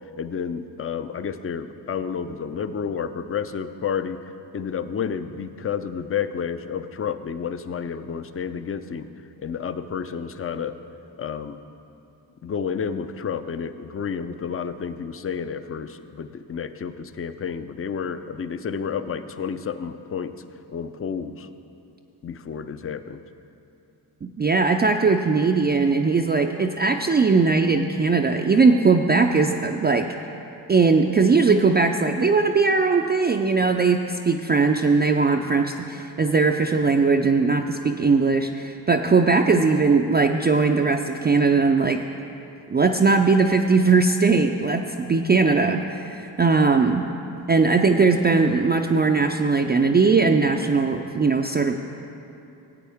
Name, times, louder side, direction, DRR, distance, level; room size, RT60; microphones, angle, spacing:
voice 1, 0.2-4.2 4.5-9.1 9.4-10.8 11.2-11.6 12.4-20.3 20.7-21.5 22.2-23.2, left 7 dB, 30° left, 11 dB, 0.5 m, -30 dB
voice 2, 24.2-30.1 30.7-42.0 42.7-47.1 47.5-51.8, right 4 dB, 20° right, 3 dB, 0.4 m, -19 dB
15.5 x 8.4 x 3.6 m, 2.8 s
supercardioid pair, 60°, 49 cm